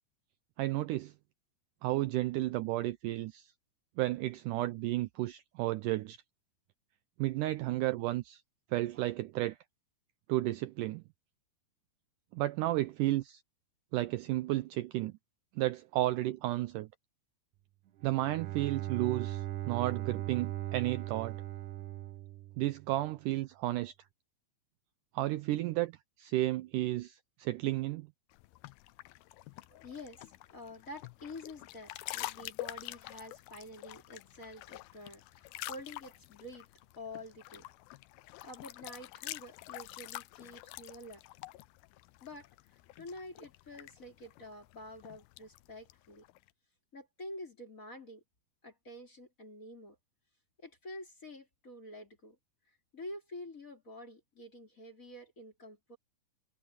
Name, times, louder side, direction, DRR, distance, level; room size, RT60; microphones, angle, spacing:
voice 1, 0.6-1.1 1.8-3.5 4.0-6.2 7.2-8.4 8.7-9.6 10.3-11.0 12.3-13.4 13.9-15.1 15.6-16.9 18.0-21.4 22.6-23.9 25.1-28.1, right 16 dB, 85° right, 1.8 m, -32 dB
Bowed string instrument, 18.0-23.0, right 14 dB, 65° right, 2.2 m, -39 dB
sound 1, 28.3-46.5, left 18 dB, 85° left, 2.6 m, -47 dB
voice 2, 29.7-36.7 37.0-37.6 38.4-41.2 42.2-42.5 43.0-46.2 46.9-48.2 48.6-50.0 50.6-52.4 52.9-56.0, left 1 dB, 20° left, 3.7 m, -48 dB
omnidirectional pair, 4.4 m